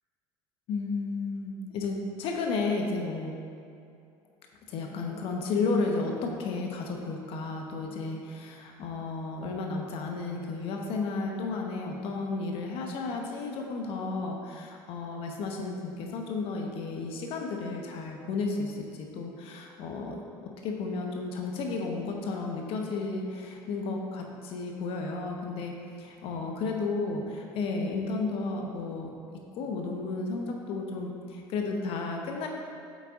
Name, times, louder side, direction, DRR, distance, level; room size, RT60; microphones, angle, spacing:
voice 1, 0.7-3.3 4.7-20.2 20.6-25.7 26.0-29.1 29.5-32.5, left 3 dB, 65° left, 2 dB, 1.0 m, -33 dB
8.3 x 4.1 x 3.6 m, 2.5 s
supercardioid pair, 90°, 11 cm